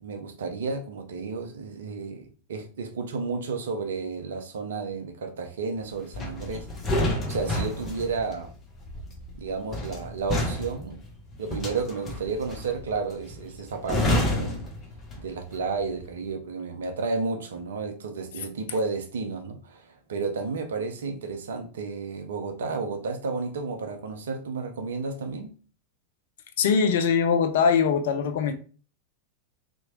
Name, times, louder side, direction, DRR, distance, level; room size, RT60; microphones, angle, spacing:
voice 1, 0.0-6.7 7.1-8.5 9.3-11.0 11.4-14.6 15.2-25.5, right 4 dB, 65° right, 0.5 m, -32 dB
sound 1, 6.1-15.5 15.8-16.1, left 1 dB, 20° left, 0.8 m, -30 dB
voice 2, 26.6-28.5, left 6 dB, 55° left, 0.4 m, -22 dB
2.8 x 2.1 x 2.9 m
figure-of-eight pair, 90°, 0 cm